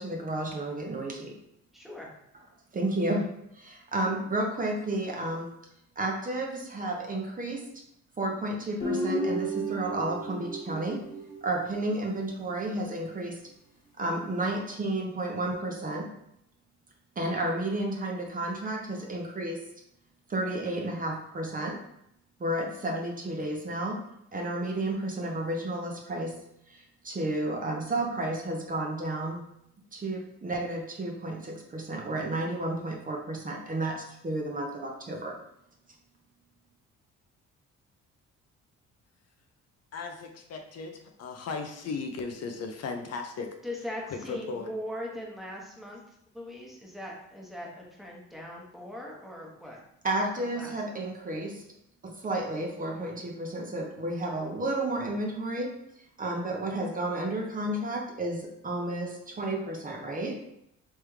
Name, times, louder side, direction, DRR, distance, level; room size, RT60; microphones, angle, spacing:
voice 1, 0.0-1.3 2.7-5.5 6.0-7.7 8.2-11.0 11.4-13.4 14.0-16.1 17.2-19.6 20.3-21.8 22.4-24.0 24.3-29.4 29.9-35.4 50.0-51.6 52.0-55.7 56.2-60.6, right 1 dB, 30° right, 1 dB, 0.7 m, -32 dB
voice 2, 1.7-2.1 43.6-49.8 50.4-51.0 52.8-53.1, left 1 dB, ahead, -2 dB, 1.0 m, -40 dB
Guitar, 8.8-12.1, right 1 dB, 80° left, 1.4 m, -33 dB
voice 3, 39.9-43.5 44.3-44.7, left 4 dB, 55° left, 4 dB, 0.5 m, -36 dB
3.5 x 3.2 x 3.2 m, 0.76 s
cardioid pair, 90°, 30 cm